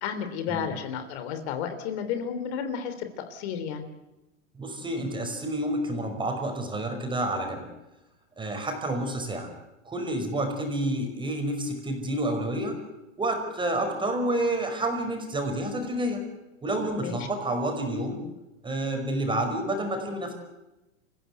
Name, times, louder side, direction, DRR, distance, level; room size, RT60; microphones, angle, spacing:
voice 1, 0.0-3.8 17.0-17.3, left 7 dB, 55° left, 9 dB, 3.5 m, -32 dB
voice 2, 4.6-7.7 8.4-9.5 9.9-12.8 13.2-16.2 16.6-18.2 18.6-20.3, right 1 dB, 10° right, 4 dB, 5.3 m, -29 dB
27.5 x 16.0 x 8.2 m, 0.99 s
hypercardioid pair, 130°, 39 cm